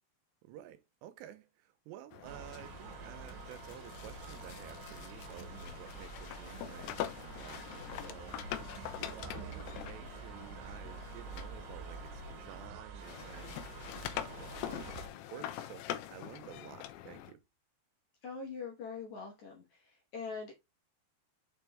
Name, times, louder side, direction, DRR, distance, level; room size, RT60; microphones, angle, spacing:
voice 1, 0.4-17.4, right 12 dB, 90° right, 2.9 m, -52 dB
sound 1, 2.1-12.7 13.0-17.3, left 12 dB, 85° left, 2.7 m, -44 dB
sound 2, 2.2-15.1, right 4 dB, 65° right, 2.5 m, -47 dB
voice 2, 18.2-20.5, left 5 dB, 65° left, 1.9 m, -43 dB
6.7 x 4.5 x 3.4 m
omnidirectional pair, 4.9 m